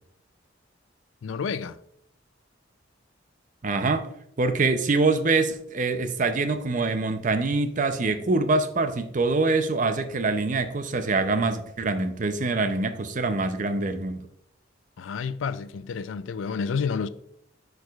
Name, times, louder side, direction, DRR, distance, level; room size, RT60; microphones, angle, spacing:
voice 1, 1.2-1.8 15.0-17.1, left 5 dB, 75° left, 0.4 m, -30 dB
voice 2, 3.6-4.1 4.4-14.3, right 3 dB, 40° right, 0.5 m, -24 dB
10.0 x 4.7 x 2.3 m
head